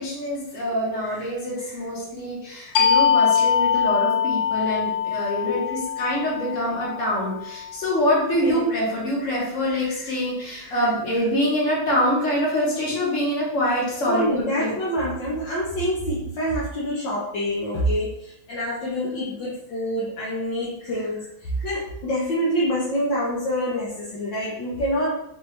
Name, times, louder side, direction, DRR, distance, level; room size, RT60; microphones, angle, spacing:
voice 1, 0.0-14.7, equal, 40° left, -5 dB, 1.5 m, -25 dB
sound 1, 2.8-8.1, left 8 dB, 90° left, 0.8 m, -23 dB
voice 2, 5.4-5.8 8.4-8.7 11.4-11.5 14.1-25.1, equal, 65° left, -6 dB, 1.4 m, -26 dB
4.6 x 2.7 x 3.2 m, 0.78 s
omnidirectional pair, 2.3 m